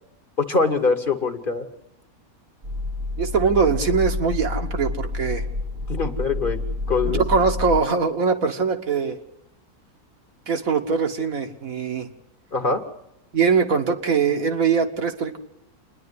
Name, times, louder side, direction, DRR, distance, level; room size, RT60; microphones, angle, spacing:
voice 1, 0.4-1.7 5.9-6.6 6.9-7.2 12.5-12.8, left 4 dB, 40° left, 7 dB, 1.2 m, -23 dB
sound 1, 2.6-7.8, left 2 dB, 40° right, 1.2 m, -28 dB
voice 2, 3.2-5.5 7.0-9.2 10.5-12.1 13.3-15.4, right 5 dB, 65° right, 5 dB, 1.7 m, -22 dB
27.0 x 10.5 x 9.6 m, 0.84 s
omnidirectional pair, 1.6 m